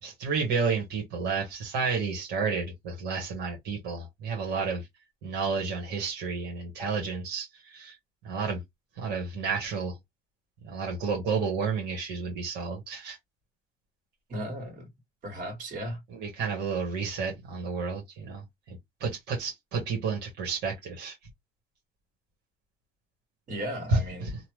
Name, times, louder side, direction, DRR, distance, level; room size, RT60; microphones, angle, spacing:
voice 1, 0.0-4.9 5.2-7.9 8.2-8.6 9.0-10.0 10.6-13.2 16.1-21.2 23.9-24.3, right 4 dB, 85° right, 1.2 m, -31 dB
voice 2, 14.3-14.9 15.2-16.0 23.5-24.4, equal, 55° right, 1.7 m, -36 dB
2.8 x 2.1 x 3.1 m
cardioid pair, 110°, 17 cm